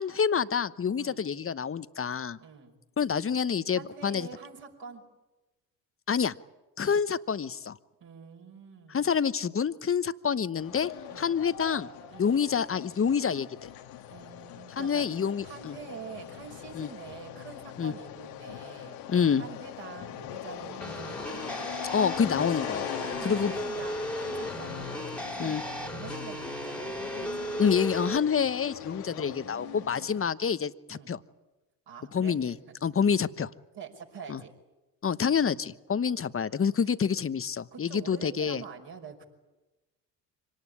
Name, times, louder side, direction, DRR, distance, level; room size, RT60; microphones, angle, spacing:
voice 1, 0.0-2.4 3.0-4.3 6.1-6.3 6.8-7.8 8.9-11.9 12.2-13.7 14.8-15.7 16.7-16.9 17.8-17.9 19.1-19.4 21.9-22.8 23.2-23.5 25.4-25.6 27.6-31.2 32.1-32.5 32.8-33.5 34.3-34.4 35.0-38.6, left 7 dB, 25° left, 14 dB, 1.0 m, -27 dB
voice 2, 2.4-2.8 3.7-5.0 8.0-9.1 11.1-11.3 12.1-12.3 14.1-19.0 19.4-22.0 22.6-22.7 23.0-27.5 28.9-30.3 30.9-31.1 31.9-32.8 33.7-34.5 35.2-35.6 37.7-39.2, right 6 dB, 55° right, 1 dB, 5.7 m, -46 dB
sound 1, 10.6-30.3, left 12 dB, 75° left, 1.7 m, -41 dB
sound 2, 20.8-28.2, right 1 dB, ahead, 2.5 m, -36 dB
25.0 x 19.0 x 9.9 m, 1.1 s
hypercardioid pair, 60°, 49 cm